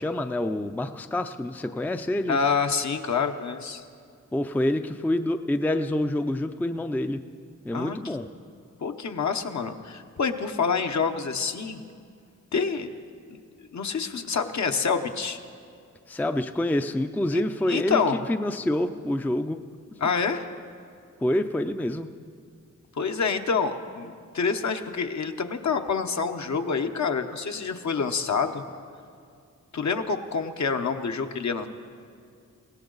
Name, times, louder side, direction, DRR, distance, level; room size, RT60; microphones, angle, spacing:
voice 1, 0.0-2.4 4.3-7.2 7.6-8.3 16.1-18.0 18.3-19.6 21.2-22.1, left 1 dB, 5° left, 8 dB, 0.4 m, -27 dB
voice 2, 2.3-3.8 7.7-8.2 8.8-11.8 12.5-12.9 13.3-13.4 13.7-15.4 17.3-17.4 17.7-18.2 20.0-20.5 22.9-28.6 29.7-31.7, left 5 dB, 60° left, 5 dB, 1.0 m, -27 dB
20.5 x 17.0 x 4.0 m, 2.2 s
wide cardioid pair, 90°, 31 cm